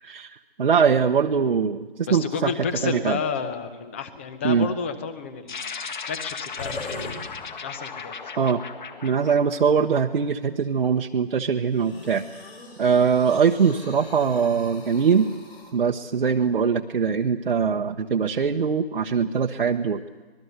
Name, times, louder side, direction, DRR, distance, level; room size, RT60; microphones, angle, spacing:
voice 1, 0.0-3.2 4.4-4.7 8.4-8.6 9.0-12.2 12.8-15.3 15.7-20.0, right 6 dB, 65° right, 2 dB, 1.1 m, -22 dB
voice 2, 2.1-5.7 6.1-7.3 7.6-8.1, left 6 dB, 15° left, 12 dB, 0.7 m, -31 dB
sound 1, 5.5-10.2, left 5 dB, 50° left, 1.9 m, -36 dB
sound 2, 6.6-7.8 8.5-8.6 11.7-15.7, left 2 dB, 80° left, 6.1 m, -40 dB
25.5 x 20.5 x 8.0 m, 1.3 s
hypercardioid pair, 160°, 31 cm